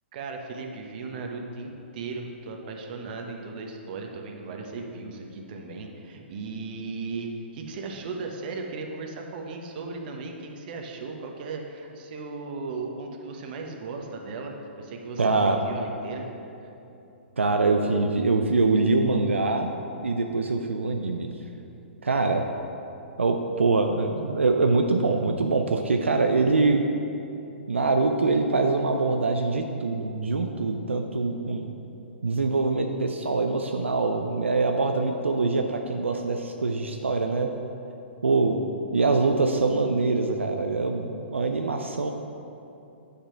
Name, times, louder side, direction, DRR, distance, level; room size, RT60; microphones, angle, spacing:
voice 1, 0.1-16.3, right 3 dB, 50° right, 2 dB, 1.0 m, -36 dB
voice 2, 15.2-15.6 17.4-19.7 20.0-21.3 22.0-22.4 23.2-26.9 27.7-31.7 32.2-37.5 38.2-38.6 38.9-42.1, right 3 dB, 90° right, 4 dB, 0.5 m, -24 dB
8.7 x 5.2 x 4.4 m, 2.8 s
hypercardioid pair, 125°, 6 cm